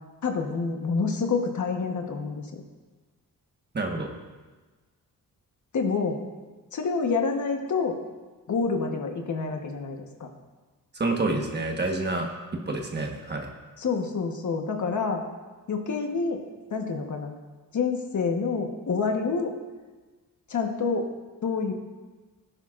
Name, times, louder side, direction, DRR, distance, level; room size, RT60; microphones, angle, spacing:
voice 1, 0.2-2.6 5.7-6.2 6.7-8.0 8.5-10.3 13.8-15.2 15.7-16.4 16.7-17.3 17.7-19.5 20.5-21.1 21.4-21.7, left 4 dB, 55° left, 3 dB, 1.3 m, -27 dB
voice 2, 3.7-4.1 10.9-12.3 12.7-13.5, right 2 dB, 30° right, 2 dB, 1.3 m, -28 dB
17.5 x 10.0 x 2.5 m, 1.3 s
wide cardioid pair, 130°, 35 cm